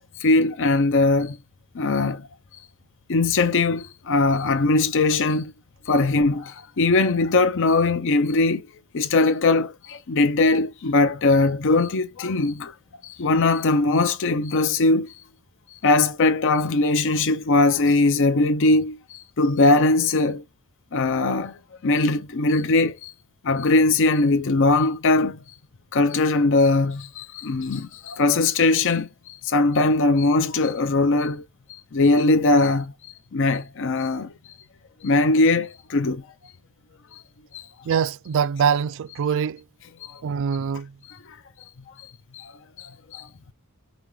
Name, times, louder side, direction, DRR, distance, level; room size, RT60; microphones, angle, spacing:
voice 1, 0.2-1.4 1.7-2.3 3.1-5.5 5.9-8.7 8.9-12.7 13.0-15.2 15.7-20.4 20.9-23.1 23.4-25.4 25.9-31.4 31.7-32.9 33.3-34.3 35.0-36.3 37.1-37.2 37.5-37.7 40.0-40.2 41.1-41.4 42.3-42.5 42.8-43.3, left 3 dB, 60° left, 0.6 m, -21 dB
voice 2, 37.9-39.6 40.2-41.0, right 7 dB, 60° right, 0.4 m, -23 dB
5.2 x 2.3 x 3.1 m
head